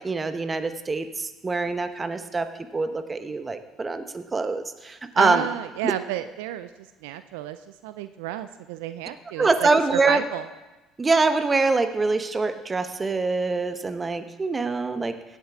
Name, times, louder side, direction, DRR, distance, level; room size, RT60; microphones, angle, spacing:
voice 1, 0.0-5.5 5.8-5.9 9.4-10.2 11.0-15.1, right 3 dB, 25° right, 9 dB, 1.0 m, -24 dB
voice 2, 5.2-10.5, right 13 dB, 75° right, 11 dB, 0.4 m, -32 dB
17.0 x 8.3 x 3.6 m, 1.1 s
hypercardioid pair, 60°, 0 cm